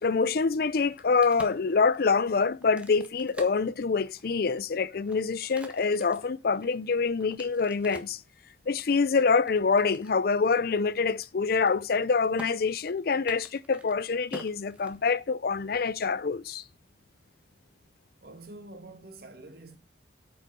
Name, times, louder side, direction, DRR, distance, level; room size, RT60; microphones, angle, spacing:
voice 1, 0.0-8.2 8.7-16.6, left 4 dB, 60° left, 0.5 m, -26 dB
Crack, 0.8-4.4 4.9-8.2 8.8-10.1 10.5-10.6 10.9-11.2 11.5-12.0 12.4-12.5 13.1-15.4, right 1 dB, 5° right, 1.5 m, -47 dB
voice 2, 18.2-19.8, right 2 dB, 60° right, 2.1 m, -46 dB
8.8 x 5.5 x 6.7 m
head